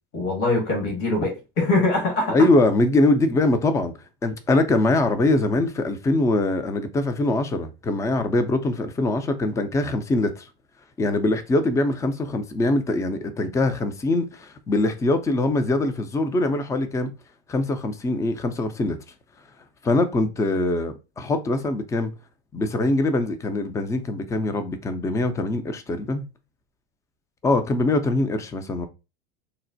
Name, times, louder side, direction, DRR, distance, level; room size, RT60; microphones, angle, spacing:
voice 1, 0.1-2.5, left 2 dB, 55° left, 1.5 m, -23 dB
voice 2, 2.3-3.9 4.2-10.5 11.0-17.1 17.5-19.0 19.8-22.1 22.5-26.2 27.4-28.9, left 2 dB, 10° left, 0.4 m, -23 dB
4.0 x 2.1 x 2.6 m
hypercardioid pair, 100°, 29 cm